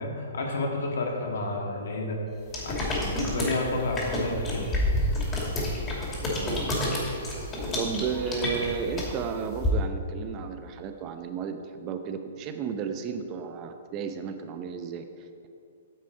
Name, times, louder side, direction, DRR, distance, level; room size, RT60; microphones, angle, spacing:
voice 1, 0.0-2.2 2.6-4.7, left 2 dB, 65° left, 0 dB, 1.8 m, -30 dB
sound 1, 2.5-9.7, left 1 dB, 20° left, 2.6 m, -29 dB
voice 2, 6.4-6.7 7.7-15.5, right 6 dB, 35° right, 7 dB, 0.7 m, -33 dB
9.0 x 7.6 x 4.8 m, 2.4 s
figure-of-eight pair, 120°, 0 cm